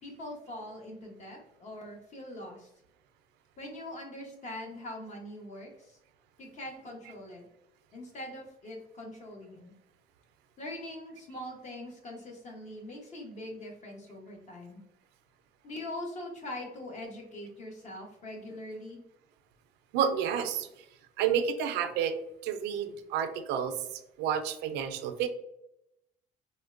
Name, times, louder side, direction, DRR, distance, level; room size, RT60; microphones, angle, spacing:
voice 1, 0.0-2.7 3.6-6.0 6.4-7.5 7.9-9.7 10.6-14.8 15.6-19.0, left 1 dB, 45° left, 1 dB, 0.9 m, -42 dB
voice 2, 19.9-20.7 21.2-22.2 22.4-23.8 24.2-25.3, right 8 dB, 90° right, 8 dB, 0.4 m, -30 dB
3.5 x 2.1 x 2.4 m, 0.84 s
cardioid pair, 110°, 17 cm